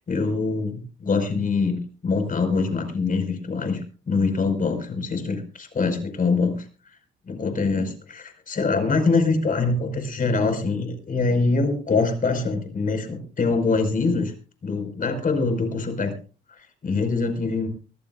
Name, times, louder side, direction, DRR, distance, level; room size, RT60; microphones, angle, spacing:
voice 1, 0.1-6.6 7.3-14.3 14.6-16.1 16.6-17.7, left 4 dB, 45° left, 6 dB, 5.2 m, -24 dB
24.0 x 15.0 x 2.5 m, 0.37 s
cardioid pair, 90°, 20 cm